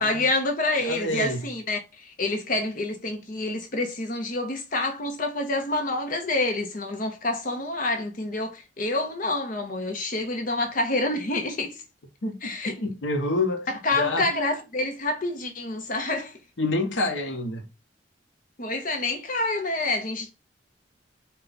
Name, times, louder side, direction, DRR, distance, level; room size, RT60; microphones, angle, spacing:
voice 1, 0.0-11.8 12.4-12.7 13.8-16.3 18.6-20.3, left 2 dB, 45° left, 0.7 m, -27 dB
voice 2, 0.8-1.4 12.2-14.3 16.6-17.7, left 2 dB, 85° left, 0.9 m, -28 dB
4.5 x 2.3 x 3.9 m
head